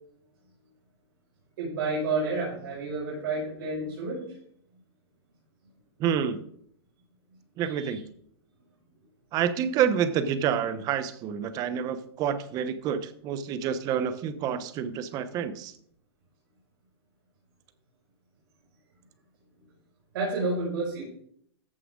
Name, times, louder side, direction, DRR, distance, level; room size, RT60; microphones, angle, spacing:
voice 1, 1.6-4.2 7.6-8.0 20.1-21.1, right 3 dB, 65° right, -4 dB, 5.6 m, -30 dB
voice 2, 6.0-6.4 7.6-8.0 9.3-15.7, right 8 dB, 30° right, 12 dB, 0.9 m, -28 dB
14.5 x 7.5 x 3.8 m, 0.65 s
hypercardioid pair, 150°, 13 cm